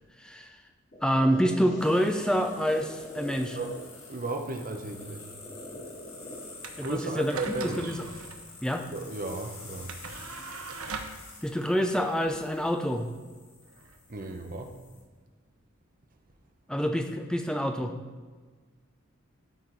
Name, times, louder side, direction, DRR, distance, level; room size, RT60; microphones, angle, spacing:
voice 1, 0.2-0.5 1.0-3.6 6.8-7.4 7.6-8.0 8.6-8.9 11.4-13.1 16.7-18.0, equal, 5° left, 5 dB, 0.5 m, -27 dB
sound 1, 0.9-8.9, equal, 40° left, 2.6 m, -45 dB
sound 2, 1.8-15.0, left 4 dB, 70° left, 1.7 m, -49 dB
voice 2, 4.1-5.3 6.8-7.9 8.9-10.0 14.1-14.8, right 2 dB, 40° right, 5 dB, 0.8 m, -35 dB
sound 3, 6.6-15.1, right 4 dB, 90° right, 0.8 m, -43 dB
13.0 x 4.5 x 4.0 m, 1.4 s
head